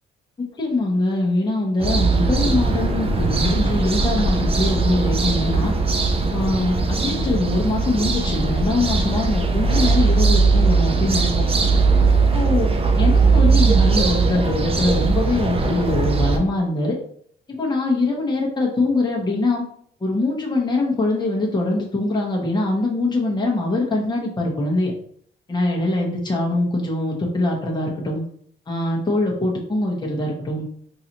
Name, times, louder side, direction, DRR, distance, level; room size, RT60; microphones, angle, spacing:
voice 1, 0.6-5.7 6.3-11.4 12.3-12.7 13.0-17.0 17.5-19.6 20.0-24.9 25.5-28.2 28.7-30.7, left 2 dB, 20° left, -2 dB, 1.1 m, -23 dB
sound 1, 1.8-16.4, right 4 dB, 30° right, 0.6 m, -19 dB
3.9 x 2.7 x 3.0 m, 0.62 s
cardioid pair, 90°, 20 cm